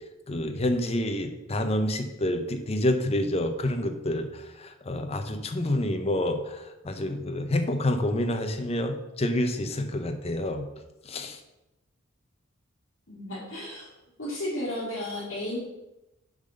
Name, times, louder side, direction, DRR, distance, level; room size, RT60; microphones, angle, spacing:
voice 1, 0.3-10.7 11.1-11.4, left 1 dB, 30° left, 6 dB, 0.7 m, -28 dB
voice 2, 13.1-13.9 14.2-15.6, left 1 dB, 65° left, -10 dB, 2.5 m, -33 dB
7.1 x 3.9 x 6.3 m, 0.96 s
head